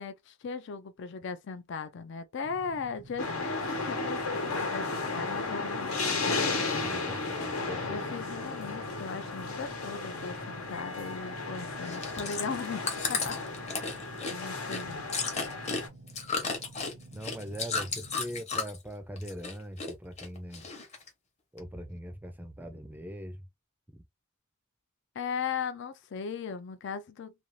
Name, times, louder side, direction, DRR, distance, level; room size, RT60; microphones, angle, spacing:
voice 1, 0.0-6.3 7.9-13.7 14.3-15.1 25.2-27.3, left 5 dB, 55° left, 0.4 m, -38 dB
sound 1, 2.4-18.4, right 2 dB, 65° right, 0.7 m, -51 dB
sound 2, 3.2-15.9, left 3 dB, 85° left, 1.0 m, -34 dB
voice 2, 6.7-8.0 17.1-20.7 21.5-23.4 23.9-24.0, equal, 10° right, 0.4 m, -41 dB
Chewing mastication, 11.8-18.9 19.2-19.9 20.2-21.1 21.6-21.7, left 4 dB, 30° left, 0.8 m, -34 dB
2.5 x 2.3 x 3.1 m
head